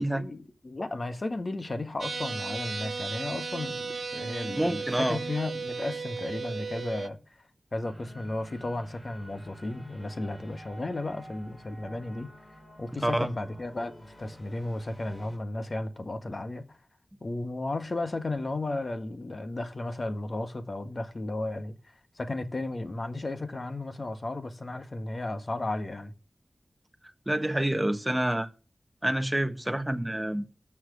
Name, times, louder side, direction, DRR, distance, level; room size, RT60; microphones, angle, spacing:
voice 1, 0.0-7.4 7.7-12.3 12.8-16.8 17.2-21.7 22.1-26.1, left 2 dB, 50° left, 1.7 m, -34 dB
sound 1, 2.0-7.1, right 4 dB, 70° right, 1.0 m, -35 dB
voice 2, 4.6-5.2 13.0-13.3 27.3-28.5 29.0-30.4, right 1 dB, 10° right, 1.4 m, -27 dB
sound 2, 7.8-15.4, right 1 dB, 25° left, 5.0 m, -50 dB
13.5 x 6.4 x 6.4 m
wide cardioid pair, 60°, 0 cm